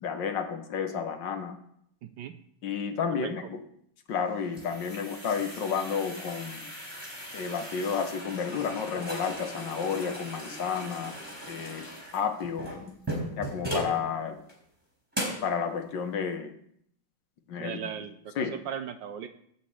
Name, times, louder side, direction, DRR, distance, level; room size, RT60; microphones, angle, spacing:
voice 1, 0.0-1.5 2.6-3.6 4.1-6.7 7.3-11.1 11.5-11.9 12.1-13.0 13.4-14.4 15.4-16.5 17.5-17.8 18.4-18.6, left 6 dB, 65° left, 7 dB, 1.5 m, -31 dB
voice 2, 2.0-2.3 3.2-3.3 17.6-19.3, right 8 dB, 75° right, 9 dB, 1.2 m, -37 dB
sound 1, 4.1-14.0 14.5-14.6 15.1-15.5, right 1 dB, 5° right, 3.8 m, -38 dB
13.0 x 4.3 x 8.2 m, 0.71 s
omnidirectional pair, 2.3 m